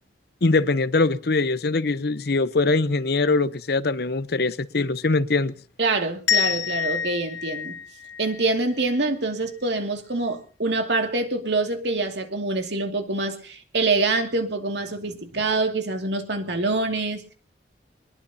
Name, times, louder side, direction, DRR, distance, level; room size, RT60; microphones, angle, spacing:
voice 1, 0.4-5.5, left 3 dB, 65° left, 0.8 m, -22 dB
voice 2, 5.8-7.8 8.2-17.3, right 3 dB, 75° right, 2.4 m, -25 dB
sound 1, 6.3-9.1, left 8 dB, 90° left, 2.8 m, -27 dB
22.5 x 21.0 x 2.8 m
head